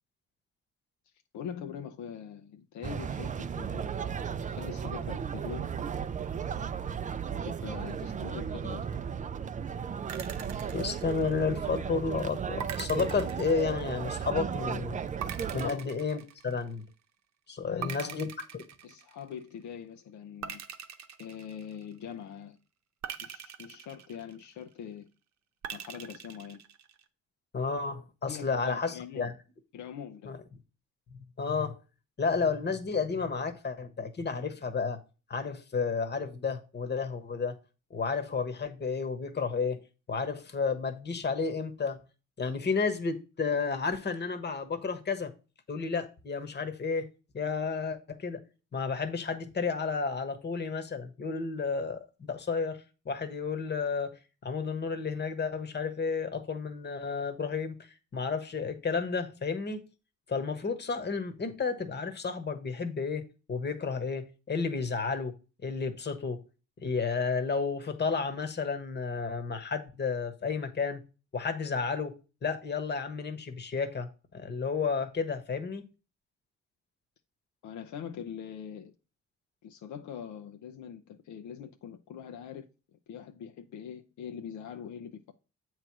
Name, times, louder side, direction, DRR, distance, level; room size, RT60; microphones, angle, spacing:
voice 1, 1.3-3.9 4.4-5.7 7.3-8.9 15.6-15.9 17.7-18.2 18.8-20.6 21.2-22.6 23.2-25.1 25.7-26.6 28.3-29.3 29.7-30.3 77.6-78.9 79.6-85.3, left 8 dB, 70° left, 0.7 m, -43 dB
sound 1, 2.8-15.7, right 7 dB, 25° right, 0.4 m, -35 dB
sound 2, 10.1-11.7 12.6-14.2 15.2-16.9 17.8-19.4 20.4-22.1 23.0-24.7 25.6-27.0, right 9 dB, 65° right, 0.8 m, -43 dB
voice 2, 10.7-15.0 15.5-16.9 17.5-18.6 27.5-29.3 30.2-30.4 31.4-31.8 32.2-35.0 35.3-37.6 37.9-42.0 42.4-45.3 45.7-47.1 47.3-48.4 48.7-57.8 58.1-59.8 60.3-65.4 65.6-66.4 66.8-71.0 71.3-75.8, left 5 dB, 35° left, 1.2 m, -32 dB
7.6 x 3.2 x 5.9 m
cardioid pair, 90°, 30 cm